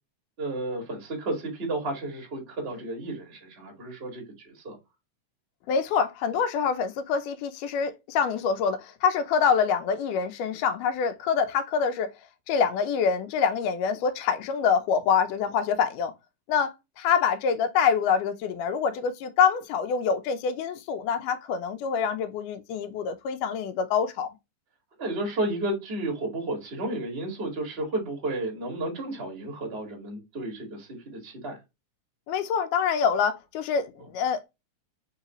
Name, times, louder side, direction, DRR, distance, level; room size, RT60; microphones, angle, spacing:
voice 1, 0.4-4.8 25.0-31.6, right 2 dB, 30° right, 1.1 m, -32 dB
voice 2, 5.7-12.1 12.5-16.1 16.5-24.3 32.3-34.5, left 6 dB, 85° left, 2.2 m, -25 dB
4.8 x 3.1 x 2.9 m
omnidirectional pair, 3.7 m